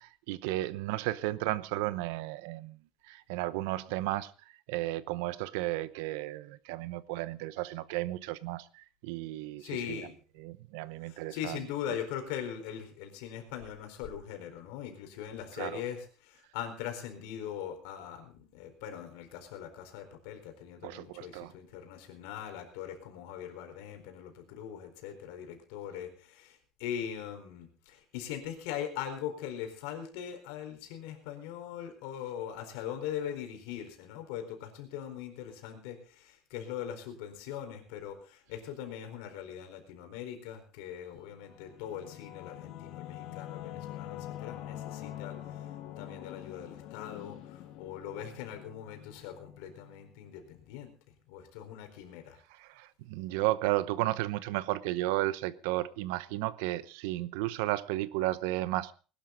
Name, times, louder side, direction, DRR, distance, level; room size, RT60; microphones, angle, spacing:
voice 1, 0.0-2.8 3.1-4.3 4.7-10.0 10.4-11.6 11.9-12.0 15.6-15.8 20.8-21.5 52.6-58.9, right 17 dB, 85° right, 0.8 m, -33 dB
voice 2, 9.6-10.1 11.0-45.3 46.0-50.9 51.3-52.4, left 9 dB, 80° left, 4.3 m, -41 dB
Singing / Musical instrument, 41.2-50.4, left 12 dB, 60° left, 1.7 m, -45 dB
20.0 x 12.0 x 4.0 m
cardioid pair, 160°, 0 cm